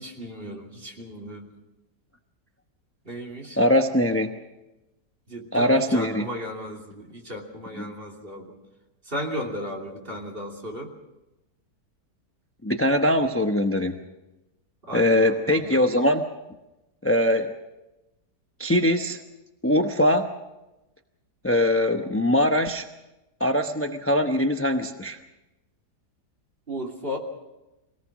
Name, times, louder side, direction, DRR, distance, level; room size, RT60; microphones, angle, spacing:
voice 1, 0.0-1.5 3.0-3.6 5.3-8.6 9.1-10.9 14.8-15.8 26.7-27.2, equal, 30° right, 0 dB, 3.1 m, -35 dB
voice 2, 3.6-4.3 5.5-6.3 7.8-7.9 12.6-14.0 14.9-16.3 17.0-17.5 18.6-19.2 19.6-20.3 21.4-22.9 23.4-25.2, left 1 dB, 15° left, 5 dB, 0.5 m, -22 dB
24.5 x 18.0 x 6.2 m, 0.99 s
omnidirectional pair, 1.8 m